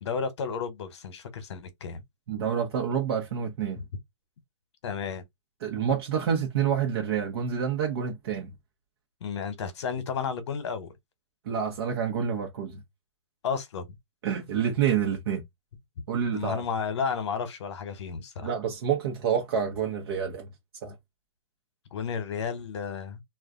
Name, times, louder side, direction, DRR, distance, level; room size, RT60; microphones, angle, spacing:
voice 1, 0.0-2.0 4.8-5.2 9.2-10.9 13.4-13.9 16.3-18.5 21.9-23.2, left 6 dB, 60° left, 1.0 m, -32 dB
voice 2, 2.3-3.8 5.6-8.5 11.4-12.8 14.2-15.4 16.1-16.6 18.4-20.5 20.8-20.9, right 7 dB, 50° right, 0.9 m, -28 dB
2.4 x 2.4 x 3.7 m
hypercardioid pair, 150°, 16 cm